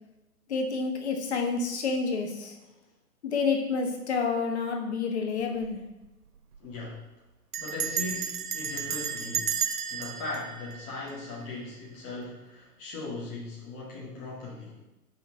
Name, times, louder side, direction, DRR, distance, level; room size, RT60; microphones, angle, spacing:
voice 1, 0.5-2.5 3.2-5.8, left 4 dB, 45° left, 3 dB, 1.4 m, -29 dB
Bell, 5.4-5.8 6.0-6.1 6.4-6.7 7.5-11.6, right 7 dB, 75° right, 0.7 m, -33 dB
voice 2, 6.6-7.0 7.6-14.8, left 2 dB, 10° left, -5 dB, 0.7 m, -39 dB
5.7 x 5.4 x 5.5 m, 0.97 s
figure-of-eight pair, 135°, 46 cm